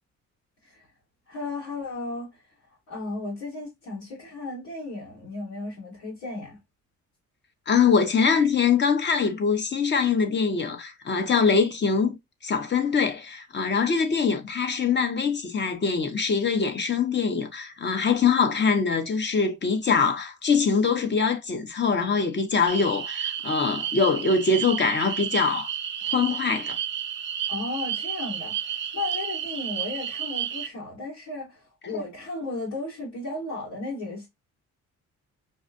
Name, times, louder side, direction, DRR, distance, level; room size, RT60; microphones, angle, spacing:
voice 1, 1.3-2.3 2.9-6.6 27.5-34.3, left 2 dB, 85° left, 2.1 m, -34 dB
voice 2, 7.7-25.7 26.1-26.8, left 5 dB, 35° left, 0.8 m, -23 dB
sound 1, 22.7-30.7, right 10 dB, 40° right, 0.5 m, -31 dB
5.4 x 2.4 x 2.4 m
cardioid pair, 90°, 30 cm